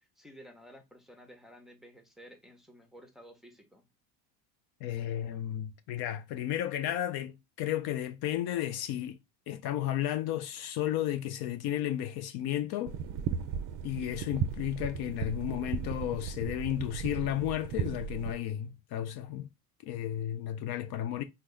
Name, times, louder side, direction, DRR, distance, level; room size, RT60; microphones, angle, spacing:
voice 1, 0.0-3.9, equal, ahead, 0.7 m, -53 dB
voice 2, 4.8-9.2 9.5-13.0 13.8-19.5 19.8-21.2, left 12 dB, 55° left, 0.5 m, -33 dB
sound 1, 12.9-18.3, right 7 dB, 45° right, 0.5 m, -36 dB
3.0 x 2.2 x 3.6 m
supercardioid pair, 90°, 46 cm